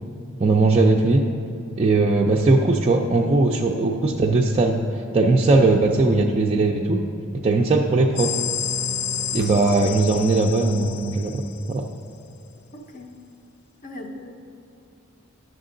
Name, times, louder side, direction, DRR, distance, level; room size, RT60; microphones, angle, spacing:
voice 1, 0.4-1.2 1.8-4.8 5.1-7.0 7.3-8.3 9.3-11.4 11.7-11.9, right 3 dB, 30° right, -1 dB, 0.4 m, -19 dB
sound 1, 8.2-11.9, left 8 dB, 85° left, 0.4 m, -30 dB
voice 2, 12.7-13.1 13.8-14.6, left 1 dB, 40° left, 4 dB, 0.7 m, -39 dB
10.5 x 6.6 x 3.8 m, 2.6 s
head